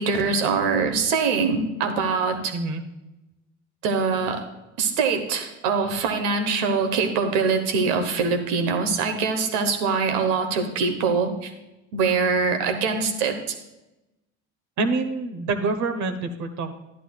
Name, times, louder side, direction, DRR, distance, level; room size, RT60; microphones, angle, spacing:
voice 1, 0.0-2.5 3.8-4.4 4.8-11.5 11.9-13.5, right 5 dB, 75° right, 6 dB, 1.3 m, -23 dB
voice 2, 2.5-2.8 14.8-16.7, right 3 dB, 50° right, 8 dB, 1.1 m, -26 dB
11.0 x 11.0 x 2.4 m, 0.98 s
hypercardioid pair, 65°, 36 cm